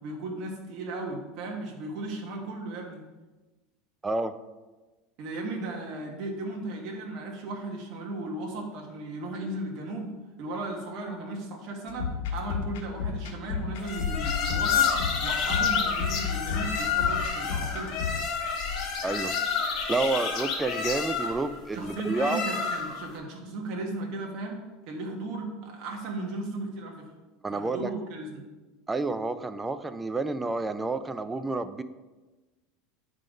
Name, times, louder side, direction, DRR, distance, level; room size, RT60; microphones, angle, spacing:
voice 1, 0.0-3.0 5.2-10.1 10.4-14.9 15.2-18.0 21.7-27.1 27.5-28.5, right 2 dB, 50° right, 0 dB, 1.3 m, -36 dB
voice 2, 4.0-4.4 19.0-19.4 19.9-22.4 27.4-27.9 28.9-31.8, right 3 dB, 10° right, 11 dB, 0.3 m, -29 dB
sound 1, 11.9-18.2, left 6 dB, 85° left, 1.4 m, -33 dB
sound 2, 13.8-23.1, left 6 dB, 40° left, 1.3 m, -29 dB
9.5 x 3.8 x 5.1 m, 1.2 s
supercardioid pair, 150°, 0 cm